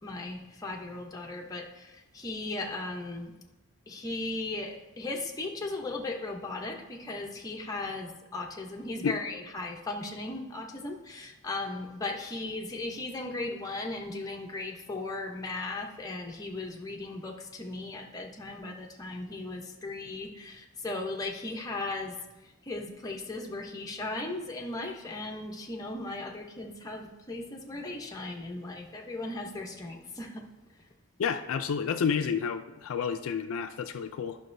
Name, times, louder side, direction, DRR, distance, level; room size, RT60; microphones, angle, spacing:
voice 1, 0.0-3.3 3.9-30.4, left 2 dB, 15° left, 1 dB, 0.8 m, -37 dB
voice 2, 31.2-34.4, left 6 dB, 70° left, 8 dB, 0.4 m, -30 dB
11.0 x 5.8 x 2.6 m, 1.1 s
head